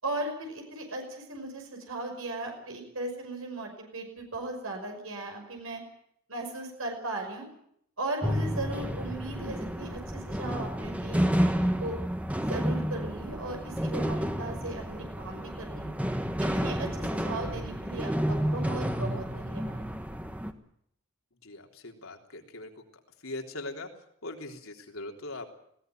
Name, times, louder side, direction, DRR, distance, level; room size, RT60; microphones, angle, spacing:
voice 1, 0.0-5.8 6.3-7.4 8.0-12.0 12.5-15.9 16.5-19.8, right 2 dB, 85° right, 3 dB, 5.9 m, -37 dB
sound 1, 8.2-20.5, equal, 5° right, 1.4 m, -30 dB
voice 2, 21.4-22.7 23.2-23.9 24.2-25.5, left 2 dB, 80° left, 3 dB, 3.6 m, -40 dB
20.0 x 17.5 x 9.3 m, 0.70 s
head